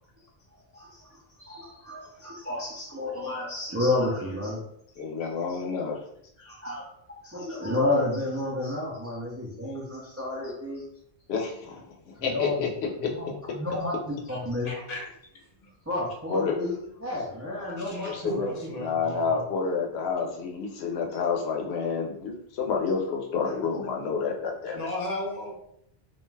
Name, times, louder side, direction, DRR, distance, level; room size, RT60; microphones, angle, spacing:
voice 1, 0.7-4.6 6.4-10.8 12.3-12.6 13.1-14.7 15.9-18.3 19.0-19.2, left 2 dB, 20° right, -5 dB, 0.4 m, -31 dB
voice 2, 5.0-6.0 11.3-13.2 16.3-16.6 18.0-18.5 18.8-24.8, left 5 dB, 90° left, 1 dB, 0.9 m, -29 dB
voice 3, 14.6-15.1 15.6-15.7 17.8-18.9 24.7-25.6, left 1 dB, 45° left, -1 dB, 0.7 m, -34 dB
2.4 x 2.2 x 3.1 m, 0.71 s
omnidirectional pair, 1.0 m